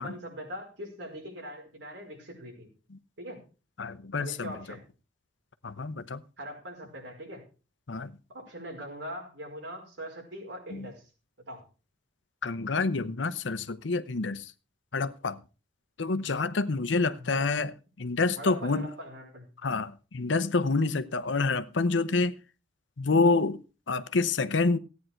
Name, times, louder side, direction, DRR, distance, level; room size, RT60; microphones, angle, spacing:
voice 1, 0.0-2.7 3.2-3.4 4.2-4.8 6.4-7.4 8.3-11.0 11.5-11.6 17.1-17.5 18.4-19.5, equal, 90° right, 5.1 m, -41 dB
voice 2, 3.8-4.5 5.6-6.2 7.9-8.1 10.7-10.9 12.4-14.5 14.9-15.4 16.0-17.7 18.0-18.9 19.6-22.4 23.0-24.8, left 3 dB, 85° left, 0.8 m, -27 dB
15.0 x 9.4 x 4.5 m
head